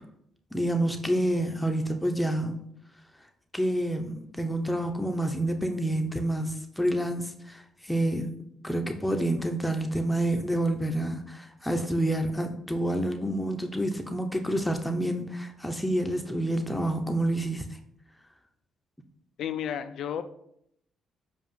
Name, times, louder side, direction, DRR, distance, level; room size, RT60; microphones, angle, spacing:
voice 1, 0.5-2.6 3.5-8.3 8.6-17.6, right 1 dB, 5° left, 0.7 m, -28 dB
voice 2, 19.4-20.2, left 9 dB, 75° left, 0.4 m, -32 dB
7.3 x 2.5 x 5.6 m
cardioid pair, 90°, 0 cm